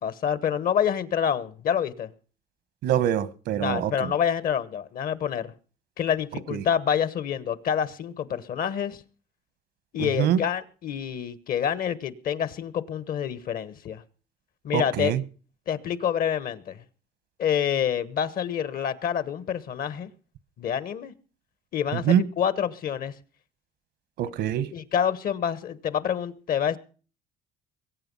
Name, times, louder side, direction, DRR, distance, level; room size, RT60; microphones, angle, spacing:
voice 1, 0.0-2.1 3.6-5.5 6.0-9.0 9.9-14.0 14.6-15.1 15.7-16.8 17.4-20.1 20.6-21.1 21.7-23.1 24.7-26.8, left 8 dB, 60° left, 1.3 m, -27 dB
voice 2, 2.8-4.1 6.5-6.6 10.0-10.4 14.7-15.2 21.9-22.2 24.2-24.7, right 10 dB, 80° right, 1.2 m, -24 dB
22.0 x 8.9 x 5.5 m
cardioid pair, 110°, 17 cm